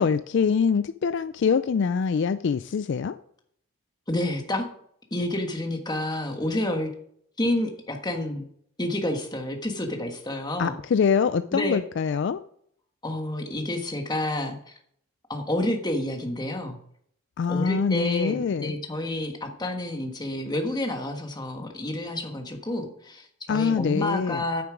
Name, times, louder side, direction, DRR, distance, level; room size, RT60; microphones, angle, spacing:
voice 1, 0.0-3.2 10.6-12.4 17.4-18.7 23.5-24.4, left 6 dB, 55° left, 13 dB, 0.3 m, -24 dB
voice 2, 4.1-4.6 5.1-6.9 7.4-8.5 8.8-10.8 11.5-11.8 13.0-14.7 15.3-16.8 17.5-24.6, left 1 dB, 20° left, 4 dB, 1.4 m, -29 dB
9.4 x 6.9 x 5.0 m, 0.66 s
head